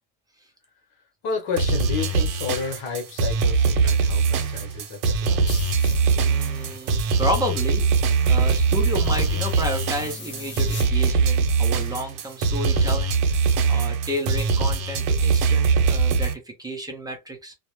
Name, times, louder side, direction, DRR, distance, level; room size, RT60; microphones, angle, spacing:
voice 1, 1.2-5.4 12.7-12.9, left 5 dB, 50° left, 1.0 m, -31 dB
sound 1, 1.6-16.3, right 4 dB, 75° right, 0.8 m, -22 dB
sound 2, 5.5-10.9, left 3 dB, 25° left, 0.9 m, -42 dB
voice 2, 6.0-7.9 8.3-17.5, equal, 10° right, 0.4 m, -31 dB
2.0 x 2.0 x 3.0 m
supercardioid pair, 105°, 48 cm